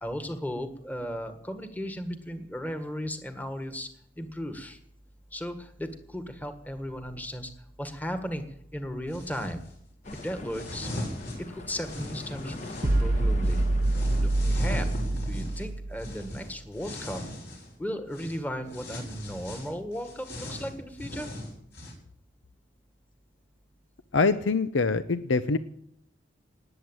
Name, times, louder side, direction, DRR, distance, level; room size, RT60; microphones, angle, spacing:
voice 1, 0.0-3.9 4.2-4.8 5.3-7.5 7.8-8.4 8.7-9.6 10.2-10.9 11.4-13.6 14.2-14.9 15.3-17.2 17.8-21.3, equal, 10° left, 7 dB, 1.6 m, -35 dB
sound 1, 9.1-9.6 10.1-13.0 13.4-17.7 18.1-18.4 18.7-21.9, left 1 dB, 60° left, 6.8 m, -39 dB
sound 2, 10.0-15.1, left 1 dB, 40° left, 1.5 m, -43 dB
sound 3, 12.8-16.3, right 2 dB, 50° right, 0.8 m, -26 dB
voice 2, 24.1-25.6, left 4 dB, 85° left, 12 dB, 0.7 m, -24 dB
19.0 x 8.0 x 9.0 m, 0.69 s
head